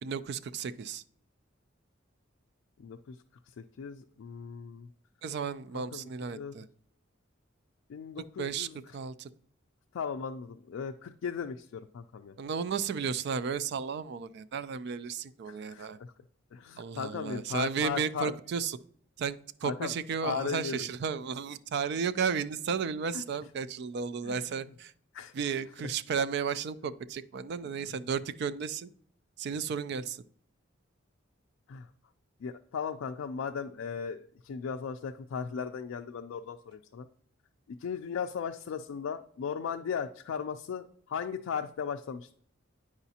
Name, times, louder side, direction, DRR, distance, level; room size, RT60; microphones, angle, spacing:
voice 1, 0.0-1.0 5.2-6.7 8.4-8.7 8.9-9.3 12.4-16.0 16.8-18.8 19.2-24.9 25.3-28.9 29.4-30.2, right 6 dB, 55° right, 15 dB, 0.3 m, -33 dB
voice 2, 2.8-3.2 3.6-4.9 5.7-6.5 7.9-8.8 9.9-12.3 15.5-16.1 16.5-18.3 19.6-19.9 20.2-20.9 23.1-23.2 24.2-24.7 25.1-25.6 27.7-28.0 31.7-31.9 32.4-37.1 37.8-42.3, left 6 dB, 85° left, 4 dB, 0.3 m, -37 dB
9.0 x 4.9 x 2.8 m, 0.62 s
head